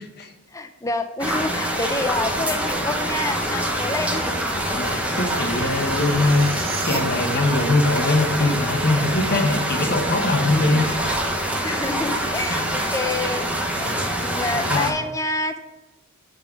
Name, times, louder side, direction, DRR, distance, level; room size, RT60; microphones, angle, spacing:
voice 1, 0.0-0.3 4.7-10.8 12.5-12.6 13.7-14.1 14.5-15.0, left 2 dB, 45° left, 3 dB, 1.1 m, -22 dB
voice 2, 0.5-4.3 6.1-6.2 11.6-13.5 13.8-15.6, left 2 dB, 15° left, 7 dB, 0.5 m, -28 dB
sound 1, 1.2-14.9, right 1 dB, 5° right, 0.8 m, -25 dB
sound 2, 2.5-7.5, right 3 dB, 40° right, 0.9 m, -38 dB
8.9 x 3.8 x 4.8 m, 1.1 s
head